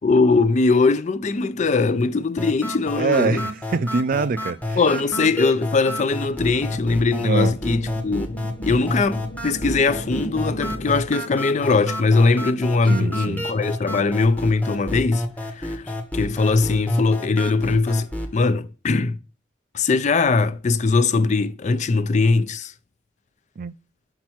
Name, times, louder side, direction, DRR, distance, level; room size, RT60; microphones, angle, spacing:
voice 1, 0.0-3.4 4.8-8.4 8.6-15.2 15.5-18.1 18.3-19.2 19.7-22.7, left 3 dB, 40° left, 0.4 m, -20 dB
sound 1, 2.4-18.4, left 1 dB, 10° left, 0.9 m, -30 dB
voice 2, 3.0-4.8 7.2-7.5 12.9-13.4 23.6-23.7, right 4 dB, 50° right, 0.4 m, -24 dB
sound 2, 6.3-11.3, equal, 70° left, 1.1 m, -37 dB
5.9 x 5.3 x 4.4 m
head